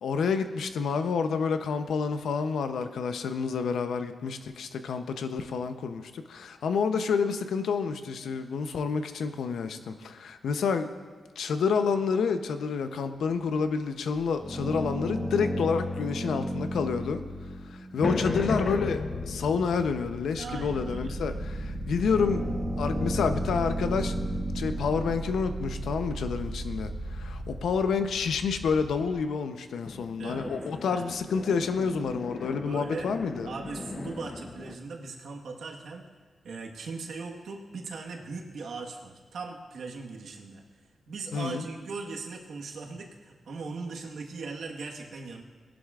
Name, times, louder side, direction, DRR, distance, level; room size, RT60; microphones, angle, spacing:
voice 1, 0.0-10.9 11.4-17.2 17.7-22.5 22.8-24.2 24.5-33.5 41.3-41.7, left 5 dB, 90° left, 8 dB, 0.7 m, -29 dB
sound 1, 14.3-18.6 19.6-19.7 20.1-29.2, equal, ahead, 1.5 m, -34 dB
sound 2, 18.0-24.5 29.9-34.8, left 3 dB, 35° left, 0.6 m, -36 dB
voice 2, 20.4-21.2 30.2-30.5 30.9-31.1 32.6-33.2 33.4-36.0 36.4-40.6 41.1-45.4, right 4 dB, 75° right, 1 dB, 1.4 m, -39 dB
19.0 x 11.0 x 2.5 m, 1.5 s
wide cardioid pair, 110°, 0 cm